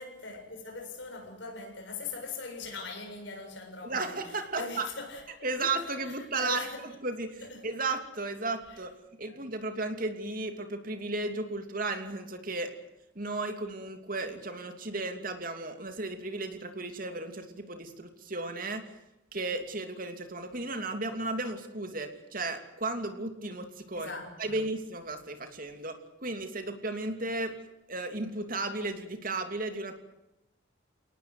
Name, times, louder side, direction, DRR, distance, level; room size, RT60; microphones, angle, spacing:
voice 1, 0.0-5.8 6.0-6.8 7.4-7.7 8.7-8.8 9.3-9.4 23.9-24.6, left 3 dB, 65° left, 7.6 m, -41 dB
voice 2, 3.8-4.8 5.4-12.7 13.1-18.8 19.3-24.1 24.4-27.5 27.9-30.0, right 2 dB, 45° right, 2.9 m, -34 dB
29.0 x 19.0 x 8.0 m
head